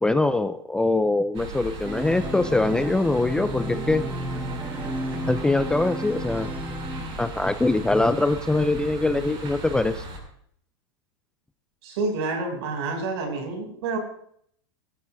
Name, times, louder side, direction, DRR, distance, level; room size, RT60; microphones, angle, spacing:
voice 1, 0.0-4.0 5.3-6.5 7.2-10.0, left 2 dB, 5° left, 10 dB, 0.5 m, -23 dB
sound 1, 1.3-10.2, right 2 dB, 35° right, 6.2 m, -37 dB
Organ, 1.9-7.6, equal, 10° right, 1.4 m, -33 dB
voice 2, 11.8-14.0, right 3 dB, 65° right, 2 dB, 6.5 m, -28 dB
22.0 x 14.0 x 2.7 m, 0.65 s
supercardioid pair, 135°, 15 cm